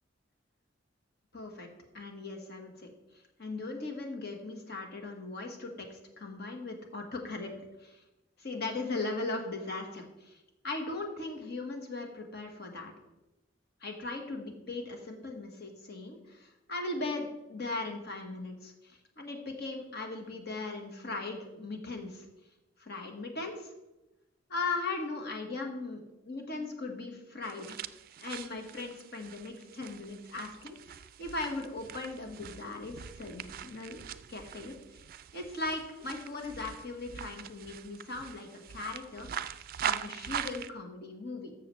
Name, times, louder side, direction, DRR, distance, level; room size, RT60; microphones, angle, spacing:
voice 1, 1.3-1.7 1.9-2.9 3.4-7.5 7.8-8.0 8.4-10.4 10.6-12.9 13.8-22.3 22.8-23.7 24.5-27.8 28.2-34.0 34.3-34.7 35.3-39.3 39.8-41.5, left 3 dB, 60° left, 3 dB, 1.5 m, -38 dB
sound 1, 27.4-40.7, right 9 dB, 50° right, 0.4 m, -42 dB
13.0 x 6.7 x 3.2 m, 0.99 s
head